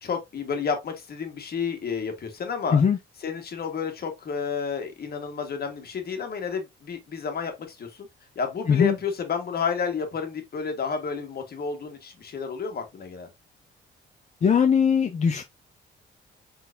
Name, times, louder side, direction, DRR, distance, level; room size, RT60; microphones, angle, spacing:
voice 1, 0.0-2.8 3.2-8.1 8.3-13.3, left 6 dB, 50° left, 1.5 m, -30 dB
voice 2, 14.4-15.4, left 7 dB, 35° left, 0.5 m, -20 dB
4.2 x 4.0 x 2.6 m
cardioid pair, 90°, 20 cm